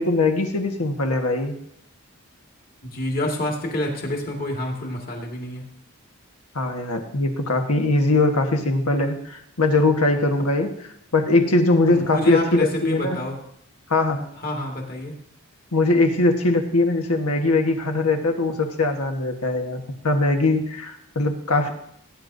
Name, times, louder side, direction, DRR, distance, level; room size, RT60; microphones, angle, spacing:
voice 1, 0.0-1.5 6.5-10.7 11.1-13.2 13.9-14.2 15.7-21.7, left 2 dB, 90° left, 4 dB, 1.4 m, -21 dB
voice 2, 2.8-5.6 11.9-13.4 14.4-15.2, left 1 dB, 40° left, 0 dB, 2.0 m, -27 dB
17.5 x 9.4 x 2.7 m, 0.73 s
head